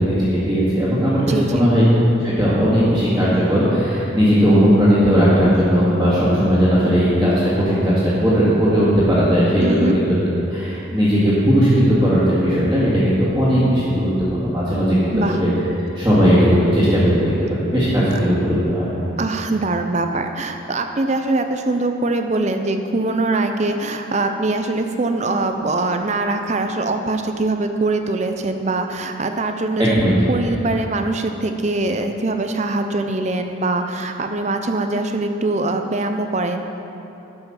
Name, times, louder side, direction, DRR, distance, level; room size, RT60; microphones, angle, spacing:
voice 1, 0.0-1.8 2.2-7.3 7.6-10.2 10.5-15.5 15.9-17.1 17.5-18.9 29.8-30.1 30.4-30.5, equal, 10° right, -12 dB, 2.1 m, -17 dB
voice 2, 1.3-1.7 9.6-10.0 15.1-15.4 19.2-30.0 30.3-36.6, right 2 dB, 35° right, 6 dB, 0.5 m, -22 dB
12.5 x 5.7 x 5.8 m, 3.0 s
head